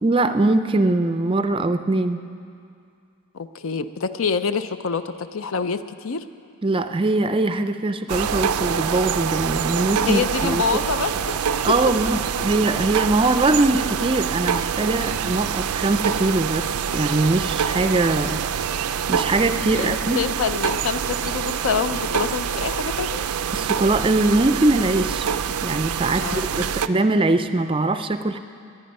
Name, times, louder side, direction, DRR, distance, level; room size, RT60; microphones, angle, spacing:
voice 1, 0.0-2.2 6.6-10.6 11.6-18.4 18.8-20.2 23.5-25.3 25.6-28.4, right 2 dB, 25° right, 10 dB, 0.4 m, -22 dB
voice 2, 3.3-6.2 10.0-11.4 18.2-18.6 19.7-23.2 26.2-26.7, left 5 dB, 65° left, 11 dB, 0.5 m, -26 dB
sound 1, 8.1-26.9, right 7 dB, 90° right, 0.4 m, -26 dB
20.5 x 9.5 x 5.4 m, 2.4 s
head